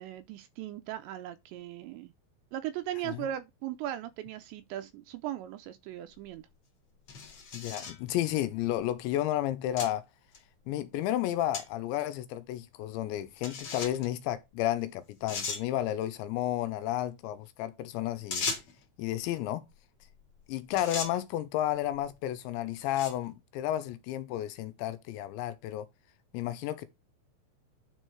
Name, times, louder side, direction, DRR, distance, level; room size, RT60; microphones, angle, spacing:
voice 1, 0.0-2.1 2.5-6.4, right 12 dB, 80° right, 2.7 m, -38 dB
sound 1, 6.2-6.3 7.1-8.0 8.8-8.9 9.8-9.9 10.3-10.4 11.5-11.6 12.0-12.1 13.4-14.1 14.8-14.9 15.3-15.6 18.3-18.8 20.2-20.4 20.7-21.1 21.9-22.2 22.8-23.3, left 5 dB, 45° left, 2.2 m, -36 dB
voice 2, 7.5-10.0 10.7-18.5 19.0-19.6 20.5-25.9 26.3-26.9, left 13 dB, 85° left, 2.9 m, -32 dB
10.0 x 4.8 x 4.6 m
omnidirectional pair, 5.4 m